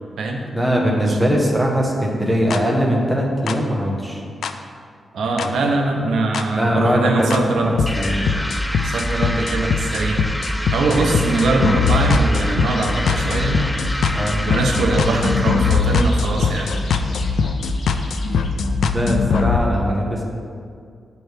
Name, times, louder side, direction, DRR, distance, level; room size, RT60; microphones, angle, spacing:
voice 1, 0.5-4.2 6.5-7.3 7.6-8.3 10.8-11.1 14.1-14.4 18.9-20.2, equal, 10° right, -1 dB, 0.9 m, -20 dB
sound 1, 2.5-2.6 3.5-3.6 4.4-4.5 5.4-5.5 6.3-6.4 7.3-7.4 7.8-19.6, left 4 dB, 80° left, 0.3 m, -21 dB
voice 2, 5.1-7.7 8.8-10.3 10.7-13.7 14.5-16.8, right 2 dB, 90° right, 2 dB, 0.7 m, -22 dB
sound 2, 7.9-16.1, left 1 dB, 5° left, 0.3 m, -29 dB
sound 3, 12.7-18.5, left 2 dB, 55° left, 0.8 m, -40 dB
9.3 x 4.6 x 3.4 m, 2.2 s
wide cardioid pair, 155°, 0 cm